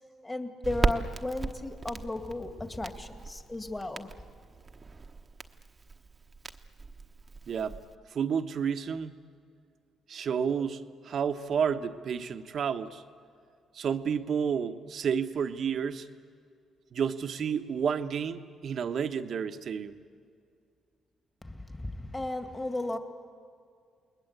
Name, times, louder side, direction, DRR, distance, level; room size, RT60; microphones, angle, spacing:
voice 1, 0.2-4.1 21.4-23.0, left 2 dB, 20° left, 7 dB, 2.1 m, -35 dB
Crackle, 0.6-7.9, right 3 dB, 30° right, 1.1 m, -36 dB
voice 2, 7.5-7.8 8.1-9.2 10.1-13.0 13.7-16.1 16.9-19.9, right 7 dB, 60° right, 9 dB, 1.2 m, -30 dB
29.0 x 20.5 x 8.3 m, 2.3 s
cardioid pair, 90°, 0 cm